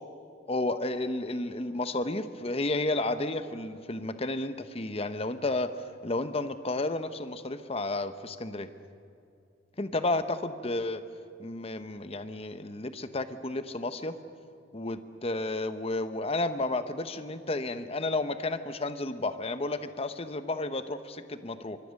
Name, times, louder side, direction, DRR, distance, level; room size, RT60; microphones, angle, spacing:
voice 1, 0.5-5.8 6.0-8.7 9.8-11.0 11.4-14.2 14.7-21.8, left 2 dB, 35° left, 10 dB, 0.9 m, -32 dB
26.0 x 23.5 x 6.5 m, 2.5 s
head